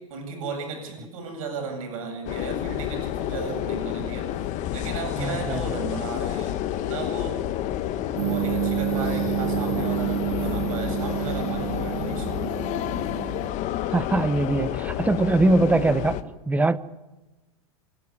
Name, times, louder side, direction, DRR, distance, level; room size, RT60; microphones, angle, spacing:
voice 1, 0.1-4.3 4.7-6.5 6.8-7.4 8.2-12.6, right 5 dB, 65° right, 4 dB, 8.0 m, -35 dB
sound 1, 2.3-16.2, left 12 dB, 40° left, 1.4 m, -29 dB
voice 2, 5.2-5.6 13.9-16.2 16.5-16.8, right 2 dB, 10° right, 16 dB, 0.8 m, -22 dB
sound 2, 8.2-13.5, right 19 dB, 50° right, 0.8 m, -29 dB
26.5 x 12.5 x 9.8 m, 1.1 s
hypercardioid pair, 115°, 18 cm